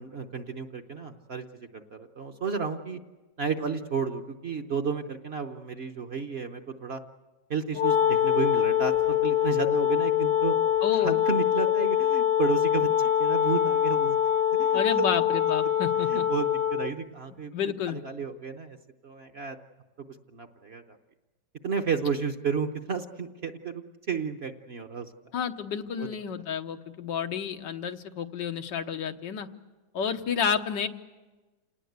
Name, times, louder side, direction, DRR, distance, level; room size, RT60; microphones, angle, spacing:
voice 1, 0.0-3.0 3.4-7.0 7.5-10.5 11.0-14.2 14.6-15.1 16.1-17.5 17.9-18.8 19.0-19.6 20.3-21.0 21.6-25.1 26.0-26.1, right 5 dB, 45° right, 6 dB, 1.0 m, -32 dB
Wind instrument woodwind instrument, 7.7-17.0, left 10 dB, 70° left, 1.5 m, -24 dB
voice 2, 10.8-11.2 14.7-16.3 17.5-18.0 25.3-29.5 29.9-30.9, left 7 dB, 90° left, 7 dB, 1.7 m, -30 dB
28.0 x 19.0 x 8.1 m, 1.2 s
omnidirectional pair, 1.9 m